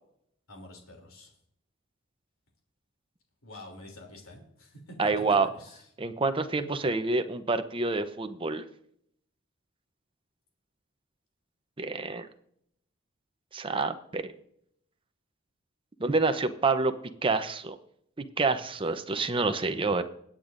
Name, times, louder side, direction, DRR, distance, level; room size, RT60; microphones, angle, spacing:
voice 1, 0.5-1.3 3.4-5.2 5.5-5.9 6.5-6.6, left 1 dB, 80° left, 2 dB, 3.0 m, -47 dB
voice 2, 5.0-5.5 6.0-8.6 11.8-12.3 13.5-14.3 16.0-16.9 17.2-17.8 18.2-20.0, right 3 dB, 25° right, 9 dB, 0.7 m, -27 dB
22.0 x 8.9 x 2.6 m, 0.71 s
head